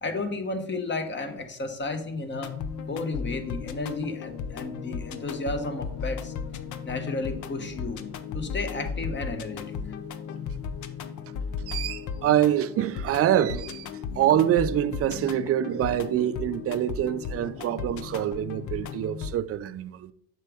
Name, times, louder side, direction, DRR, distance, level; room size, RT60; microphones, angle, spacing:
voice 1, 0.0-2.5 2.9-6.3 6.8-8.0 8.3-9.8, left 3 dB, 30° left, 1.1 m, -32 dB
sound 1, 2.3-19.3, left 6 dB, 50° left, 0.7 m, -35 dB
voice 2, 11.7-13.9 14.2-20.1, right 11 dB, 40° right, 0.5 m, -25 dB
7.4 x 6.1 x 3.5 m
supercardioid pair, 100°, 38 cm